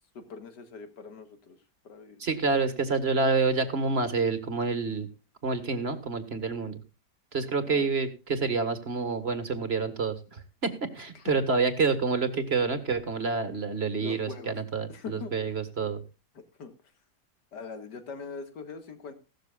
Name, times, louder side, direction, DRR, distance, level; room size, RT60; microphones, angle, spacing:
voice 1, 0.1-1.6 1.8-2.4 7.7-7.9 11.1-11.2 14.0-14.5 14.9-15.3 16.6-16.7 17.5-19.1, left 5 dB, 75° left, 8 dB, 2.5 m, -42 dB
voice 2, 2.2-5.1 5.4-6.8 7.3-16.0, right 4 dB, 35° right, 10 dB, 1.9 m, -28 dB
16.5 x 13.0 x 2.4 m, 0.30 s
omnidirectional pair, 1.8 m